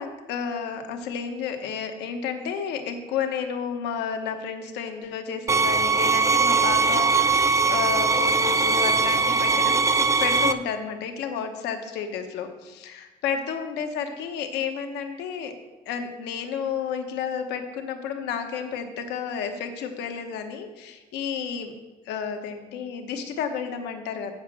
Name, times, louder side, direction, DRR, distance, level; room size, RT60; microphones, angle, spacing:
voice 1, 0.0-15.5 15.9-21.7 22.1-24.3, left 7 dB, 85° left, 6 dB, 1.1 m, -31 dB
sound 1, 5.5-10.5, right 4 dB, 20° right, 0.4 m, -21 dB
8.0 x 5.0 x 7.5 m, 1.2 s
cardioid pair, 110°, 17 cm